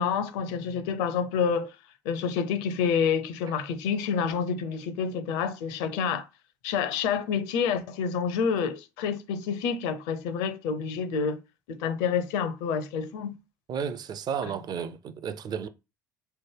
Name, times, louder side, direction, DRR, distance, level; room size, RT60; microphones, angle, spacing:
voice 1, 0.0-1.7 2.0-6.3 6.6-11.4 11.7-13.3, left 6 dB, 65° left, 0.6 m, -28 dB
voice 2, 13.7-15.7, right 7 dB, 40° right, 0.5 m, -33 dB
3.2 x 2.1 x 3.4 m
hypercardioid pair, 65°, 10 cm